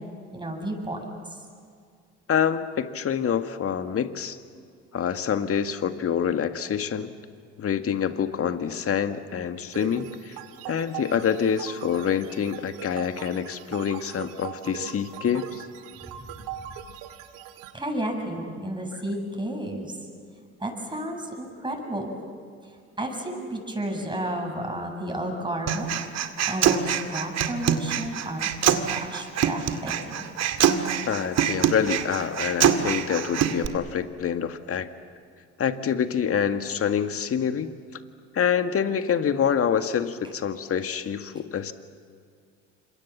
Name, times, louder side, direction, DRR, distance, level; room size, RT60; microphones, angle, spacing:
voice 1, 0.3-1.0 17.7-19.9 20.6-22.2 23.0-25.9 26.4-30.2, right 1 dB, 15° right, 2 dB, 7.8 m, -32 dB
voice 2, 2.3-4.4 4.9-7.1 7.6-10.4 10.7-15.6 31.1-34.9 35.6-37.7 38.3-41.7, left 8 dB, 40° left, 8 dB, 1.9 m, -26 dB
sound 1, 9.7-17.7, right 10 dB, 65° right, 2.0 m, -41 dB
Human voice, 25.7-33.7, right 9 dB, 50° right, 2.2 m, -24 dB
29.0 x 26.5 x 7.5 m, 2.2 s
hypercardioid pair, 60°, 35 cm